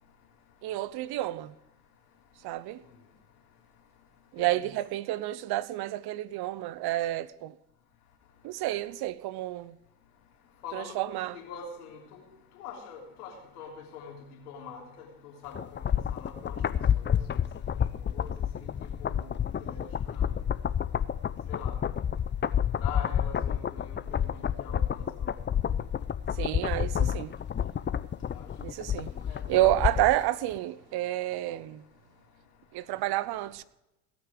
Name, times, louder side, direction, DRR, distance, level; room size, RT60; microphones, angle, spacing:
voice 1, 0.6-1.6 2.4-2.8 4.3-7.6 8.4-9.8 10.7-11.4 26.3-27.3 28.6-29.1 29.5-31.8 32.7-33.6, right 15 dB, 60° right, 0.7 m, -30 dB
voice 2, 10.6-12.2 12.5-14.1 14.5-14.8 15.2-16.6 17.0-17.4 18.0-20.3 21.5-21.8 22.8-25.3 28.3-28.5 29.3-29.4, left 6 dB, 90° left, 3.2 m, -44 dB
sound 1, 15.5-30.2 30.5-30.6, left 9 dB, 25° left, 0.6 m, -29 dB
17.5 x 6.1 x 7.5 m
hypercardioid pair, 70°, 44 cm